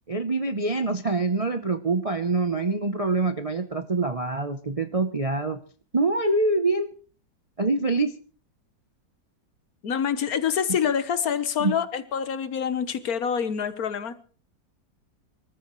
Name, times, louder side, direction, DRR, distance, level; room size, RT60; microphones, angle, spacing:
voice 1, 0.1-5.6 5.9-6.9 7.6-8.2 11.6-11.7, right 3 dB, 35° right, 0.5 m, -25 dB
voice 2, 9.8-14.2, left 8 dB, 65° left, 1.4 m, -26 dB
25.0 x 13.5 x 3.1 m
omnidirectional pair, 1.8 m